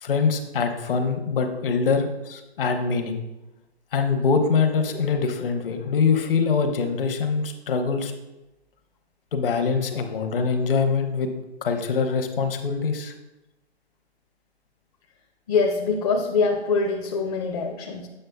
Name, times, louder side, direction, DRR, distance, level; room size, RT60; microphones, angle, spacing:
voice 1, 0.0-3.2 3.9-8.1 9.3-11.3 11.6-13.1, left 5 dB, 55° left, 5 dB, 0.9 m, -24 dB
voice 2, 15.5-18.1, left 4 dB, 35° left, 1 dB, 0.6 m, -24 dB
7.7 x 6.2 x 2.3 m, 0.99 s
hypercardioid pair, 145°, 33 cm